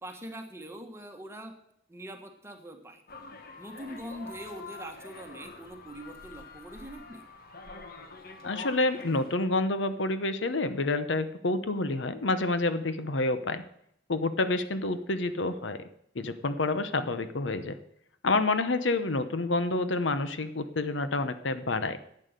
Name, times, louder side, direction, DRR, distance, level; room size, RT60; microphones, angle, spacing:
voice 1, 0.0-1.5 1.9-3.0 3.6-7.2, right 1 dB, 15° right, 4 dB, 1.6 m, -43 dB
sound 1, 3.1-9.4, left 3 dB, 55° left, 1.4 m, -46 dB
voice 2, 8.4-13.6 14.1-15.8 16.1-17.8 18.2-22.0, left 2 dB, 85° left, 11 dB, 1.0 m, -28 dB
11.0 x 8.8 x 6.7 m, 0.72 s
head